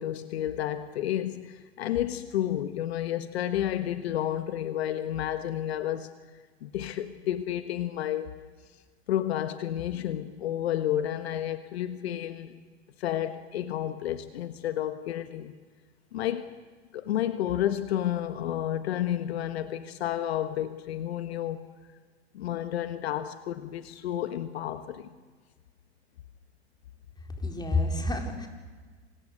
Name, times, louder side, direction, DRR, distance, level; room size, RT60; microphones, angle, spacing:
voice 1, 0.0-6.1 6.6-8.4 9.1-12.5 13.0-15.5 16.1-16.5 16.9-21.6 22.3-25.1, left 11 dB, 70° left, 1.5 m, -31 dB
voice 2, 27.4-28.5, left 2 dB, 10° left, 4.5 m, -28 dB
27.5 x 27.0 x 6.7 m
hypercardioid pair, 100°, 33 cm